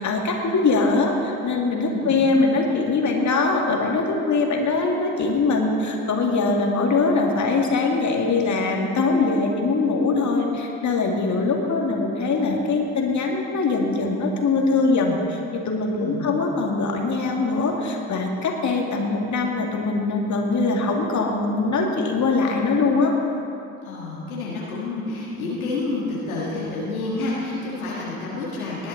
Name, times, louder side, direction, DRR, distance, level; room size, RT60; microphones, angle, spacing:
voice 1, 0.0-23.1, left 3 dB, 45° left, 1 dB, 2.2 m, -22 dB
voice 2, 1.8-2.3 15.9-16.4 23.8-28.9, left 3 dB, 85° left, -5 dB, 1.7 m, -29 dB
19.5 x 10.5 x 4.0 m, 2.6 s
figure-of-eight pair, 50°, 41 cm